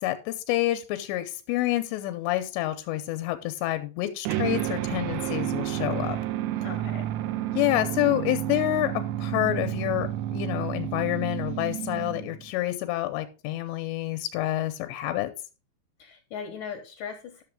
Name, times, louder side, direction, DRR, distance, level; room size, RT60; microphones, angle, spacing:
voice 1, 0.0-6.2 7.6-8.9 9.2-15.3, left 16 dB, 90° left, 9 dB, 2.9 m, -28 dB
sound 1, 4.3-12.5, right 13 dB, 80° right, 2.8 m, -30 dB
voice 2, 6.6-7.1 16.0-17.4, left 7 dB, 70° left, 5 dB, 2.0 m, -38 dB
11.0 x 6.8 x 3.7 m, 0.33 s
omnidirectional pair, 5.0 m